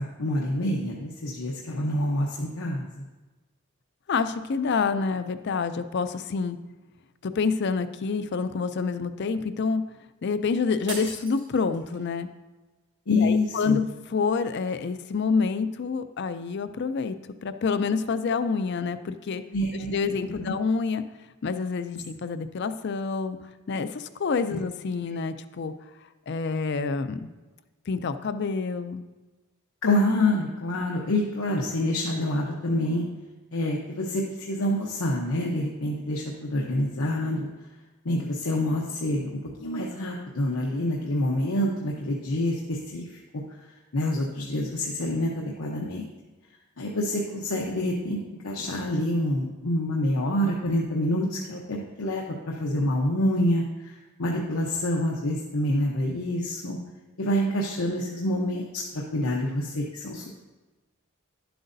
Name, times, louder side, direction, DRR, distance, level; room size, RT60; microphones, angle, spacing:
voice 1, 0.0-2.9 13.1-13.8 19.5-19.9 20.3-20.5 24.5-24.6 29.8-33.0 33.5-37.5 38.0-43.2 43.9-46.0 46.8-48.2 48.4-56.8 57.2-58.8 59.1-60.4, left 1 dB, 90° left, -1 dB, 0.9 m, -27 dB
voice 2, 4.1-6.6 7.2-9.8 10.2-12.3 13.1-17.2 17.4-19.4 19.7-21.0 21.4-23.4 23.7-25.7 26.3-27.3 27.9-29.0, left 5 dB, 55° left, 11 dB, 0.4 m, -27 dB
sound 1, 10.9-12.1, right 4 dB, 55° right, 1.6 m, -39 dB
11.0 x 7.8 x 2.6 m, 1.2 s
head